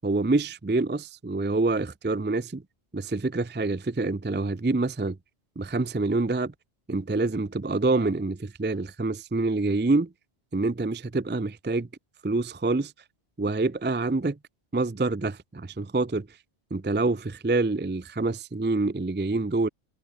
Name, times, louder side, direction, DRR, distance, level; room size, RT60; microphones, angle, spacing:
voice 1, 0.0-2.6 2.9-5.2 5.6-6.5 6.9-10.1 10.5-11.9 12.2-12.9 13.4-14.4 14.7-16.3 16.7-19.7, right 3 dB, 15° right, 0.4 m, -26 dB
omnidirectional pair, 1.1 m